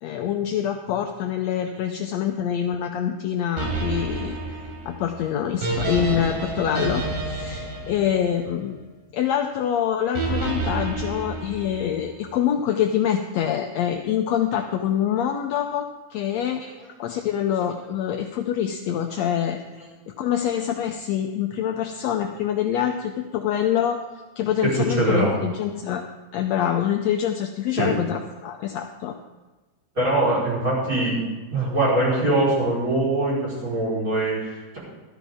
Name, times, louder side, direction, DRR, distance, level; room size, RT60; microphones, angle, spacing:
voice 1, 0.0-4.4 4.8-8.8 9.1-16.6 17.0-19.6 20.2-24.0 24.4-26.0 26.3-29.2, left 9 dB, 80° left, 4 dB, 1.5 m, -25 dB
sound 1, 3.6-8.9 10.1-12.1, right 3 dB, 80° right, 4.5 m, -29 dB
voice 2, 24.6-25.3 27.8-27.9 30.0-31.2 31.5-34.8, right 2 dB, 25° right, -7 dB, 4.8 m, -22 dB
14.0 x 12.5 x 3.6 m, 1.2 s
omnidirectional pair, 3.8 m